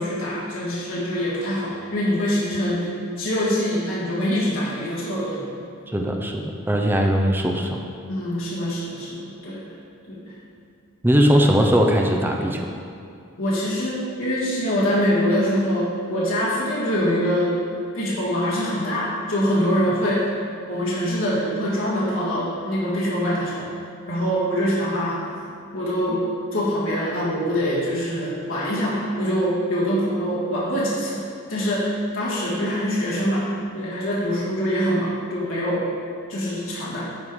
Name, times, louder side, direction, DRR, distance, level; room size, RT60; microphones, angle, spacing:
voice 1, 0.0-5.4 8.1-9.6 10.1-10.2 13.4-17.6 17.9-20.3 20.7-23.7 24.1-25.3 25.7-26.2 26.5-31.2 31.5-35.9 36.3-37.1, equal, 70° left, -7 dB, 1.9 m, -24 dB
voice 2, 5.9-7.8 11.0-12.6, equal, 10° right, 1 dB, 0.6 m, -19 dB
9.7 x 3.8 x 4.8 m, 2.6 s
head